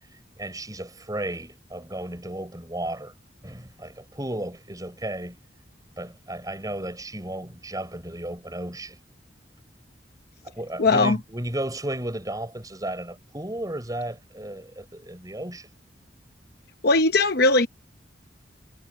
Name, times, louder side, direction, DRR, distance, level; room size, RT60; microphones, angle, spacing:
voice 1, 0.4-3.1 3.4-5.4 6.0-9.0 10.4-15.7, right 1 dB, 20° right, 6.0 m, -34 dB
voice 2, 10.8-11.2 16.8-17.7, left 3 dB, 60° left, 0.9 m, -19 dB
head